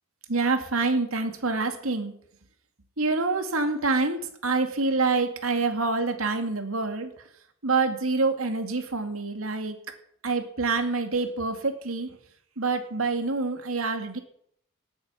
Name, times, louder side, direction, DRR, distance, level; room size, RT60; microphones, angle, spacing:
voice 1, 0.3-2.1 3.0-7.1 7.6-9.8 10.2-12.1 12.6-14.2, right 3 dB, 80° right, 6 dB, 2.4 m, -26 dB
18.0 x 8.8 x 7.3 m, 0.68 s
head